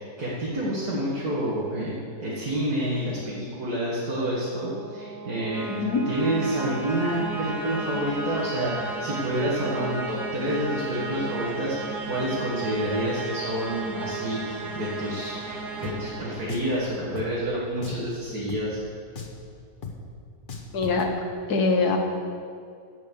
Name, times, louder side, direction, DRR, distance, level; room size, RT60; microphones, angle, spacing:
voice 1, 0.2-5.6 6.1-18.8, right 1 dB, 70° right, -7 dB, 2.5 m, -28 dB
sound 1, 4.1-17.1, right 3 dB, 85° right, 1.9 m, -34 dB
voice 2, 5.6-6.1 20.7-21.1 21.5-22.0, left 4 dB, 75° left, 3 dB, 1.8 m, -23 dB
Drum, 15.8-16.0 16.5-16.7 17.2-17.3 17.8-18.1 18.5-18.6 19.2-19.4 19.8-20.0 20.5-21.0, left 5 dB, 35° left, 1.1 m, -37 dB
16.0 x 5.6 x 6.9 m, 2.3 s
omnidirectional pair, 1.7 m